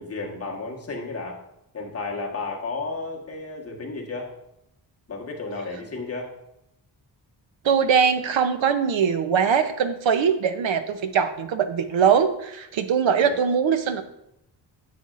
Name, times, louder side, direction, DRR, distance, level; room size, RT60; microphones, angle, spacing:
voice 1, 0.0-1.4 1.7-4.3 5.1-6.3 13.2-13.3, left 3 dB, 30° left, -1 dB, 1.4 m, -33 dB
voice 2, 7.6-14.0, right 7 dB, 90° right, 9 dB, 0.8 m, -21 dB
9.6 x 7.7 x 2.5 m, 0.81 s
wide cardioid pair, 155°, 45 cm